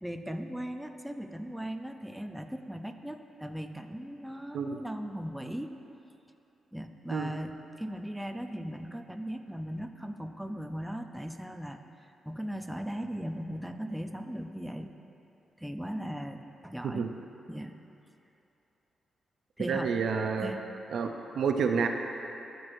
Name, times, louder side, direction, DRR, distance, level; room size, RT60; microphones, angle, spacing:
voice 1, 0.0-5.7 6.7-11.8 12.3-14.9 15.6-17.1 17.5-17.8 19.6-19.9 20.2-20.6, equal, 5° right, 6 dB, 0.5 m, -38 dB
voice 2, 19.6-20.5 20.9-21.9, right 6 dB, 75° right, 4 dB, 0.5 m, -29 dB
14.5 x 6.2 x 2.6 m, 2.8 s
cardioid pair, 80°, 0 cm